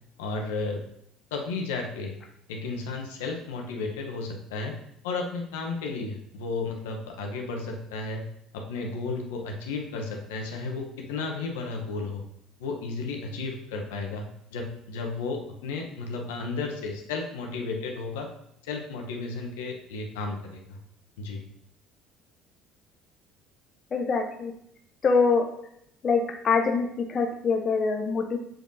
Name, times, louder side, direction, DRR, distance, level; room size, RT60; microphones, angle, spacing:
voice 1, 0.2-0.8 1.3-2.1 2.5-4.8 5.0-8.2 8.5-12.2 12.6-14.2 14.5-18.3 18.6-20.8 21.2-21.4, left 3 dB, 75° left, 2 dB, 0.9 m, -33 dB
voice 2, 23.9-24.5 25.0-25.5 26.0-28.4, left 4 dB, 40° left, 4 dB, 0.7 m, -24 dB
7.5 x 5.1 x 2.7 m, 0.73 s
hypercardioid pair, 60°, 0 cm